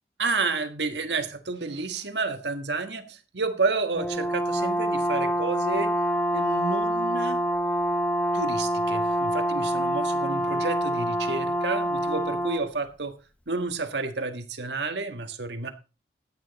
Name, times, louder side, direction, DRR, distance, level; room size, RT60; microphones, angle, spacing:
voice 1, 0.2-5.9 6.3-7.4 8.3-13.2 13.5-15.7, right 3 dB, 80° right, 1.6 m, -30 dB
Brass instrument, 4.0-12.7, equal, 10° left, 0.9 m, -26 dB
13.5 x 9.0 x 4.1 m
head